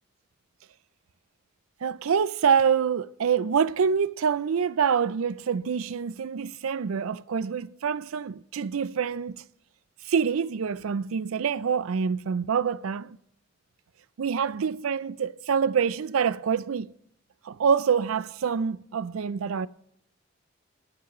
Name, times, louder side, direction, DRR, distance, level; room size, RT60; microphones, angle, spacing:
voice 1, 1.8-9.4 10.1-13.2 14.2-16.9 17.4-19.7, right 6 dB, 85° right, 0.4 m, -26 dB
18.0 x 9.6 x 3.0 m
head